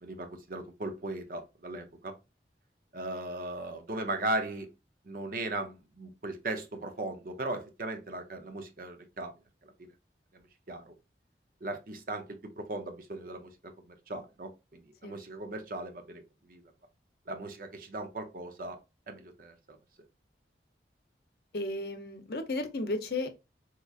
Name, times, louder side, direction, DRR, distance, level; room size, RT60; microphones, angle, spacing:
voice 1, 0.0-2.1 2.9-4.7 5.0-9.3 9.6-9.9 10.3-10.4 10.7-10.9 11.6-16.6 17.3-18.8 19.1-19.8, right 2 dB, 50° right, 0.7 m, -38 dB
voice 2, 21.5-23.4, left 2 dB, 60° left, 0.7 m, -34 dB
3.7 x 2.9 x 2.4 m
head